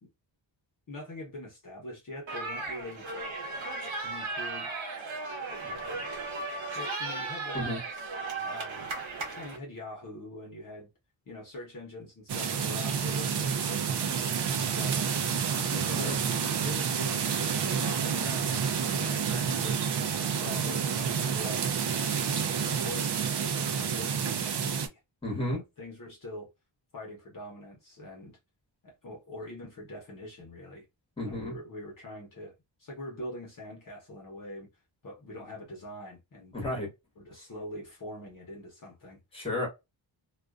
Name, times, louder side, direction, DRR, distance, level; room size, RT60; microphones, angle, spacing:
voice 1, 0.9-3.1 4.0-4.8 5.6-6.1 6.7-7.7 8.3-8.9 9.3-10.9 11.3-15.4 15.9-16.2 16.6-19.8 20.2-21.7 22.1-23.1 23.4-25.0 25.4-26.5 26.9-28.4 28.8-30.8 31.2-32.5 32.8-34.7 35.0-36.5 37.2-39.2, left 1 dB, 45° left, 0.9 m, -43 dB
sound 1, 2.3-9.6, right 3 dB, 85° right, 0.9 m, -36 dB
sound 2, 12.3-24.9, right 7 dB, 60° right, 0.5 m, -29 dB
voice 2, 15.5-16.2 25.2-25.6 31.2-31.5 36.5-36.9 39.3-39.7, left 1 dB, 10° left, 1.1 m, -33 dB
2.4 x 2.3 x 2.3 m
wide cardioid pair, 175°, 46 cm